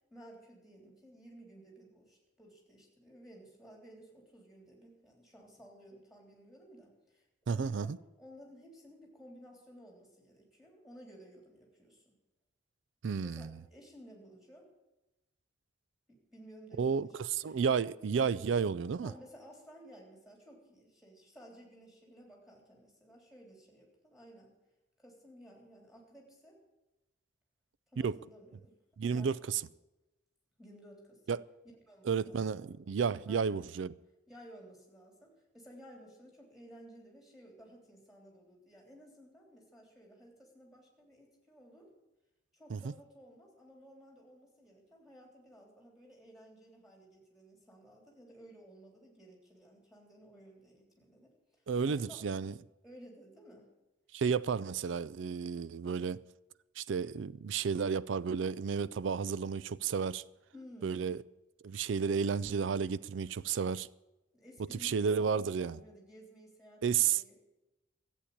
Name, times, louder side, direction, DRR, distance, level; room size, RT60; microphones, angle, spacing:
voice 1, 0.1-12.2 13.2-14.7 16.1-17.6 19.0-24.5 25.0-26.6 27.9-28.8 29.0-29.5 30.6-31.2 31.9-32.7 33.3-33.7 34.3-41.9 42.5-52.2 52.8-53.7 60.5-61.0 64.3-67.4, equal, ahead, 3.4 m, -56 dB
voice 2, 7.5-8.0 13.0-13.5 16.8-19.1 28.0-28.2 29.0-29.6 31.3-31.4 32.1-33.9 42.7-42.8 51.7-52.5 54.1-56.2 56.8-60.2 60.8-61.2 61.6-63.9 64.8-65.8 66.8-67.4, right 6 dB, 70° right, 0.4 m, -32 dB
14.0 x 8.2 x 8.6 m
head